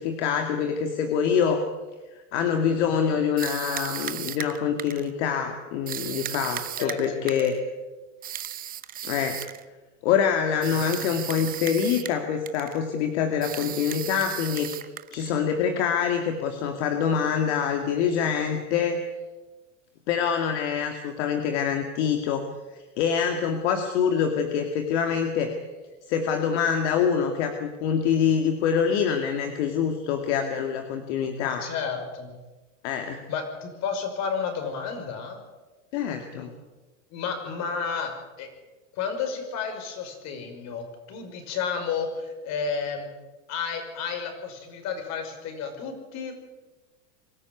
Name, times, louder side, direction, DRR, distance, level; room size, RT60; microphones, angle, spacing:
voice 1, 0.0-1.7 2.3-7.5 9.0-9.4 10.0-14.7 15.1-19.0 20.1-22.5 23.0-25.5 26.1-31.6 32.8-33.2 35.9-36.5, left 7 dB, 60° left, 5 dB, 2.4 m, -25 dB
sound 1, 3.4-5.1 5.9-7.6 8.2-9.6 10.6-12.2 12.5-12.8 13.4-15.3, right 10 dB, 20° right, 0.9 m, -35 dB
voice 2, 6.8-7.5 10.7-11.1 31.4-32.4 33.3-35.4 36.4-36.5 37.1-38.1 38.4-38.5 38.9-43.1 43.5-46.3, left 6 dB, 45° left, 6 dB, 5.7 m, -32 dB
24.0 x 13.5 x 9.6 m, 1.2 s
supercardioid pair, 130°, 38 cm